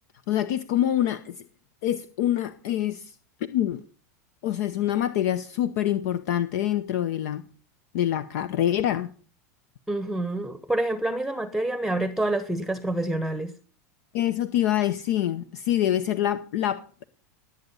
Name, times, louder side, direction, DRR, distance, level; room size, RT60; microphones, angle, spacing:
voice 1, 0.3-1.5 1.8-3.1 3.5-3.8 4.4-7.4 7.9-9.1 14.1-17.0, left 11 dB, 65° left, 0.7 m, -25 dB
voice 2, 9.9-13.5, right 1 dB, ahead, 0.9 m, -27 dB
18.0 x 8.3 x 5.5 m
hypercardioid pair, 115°, 9 cm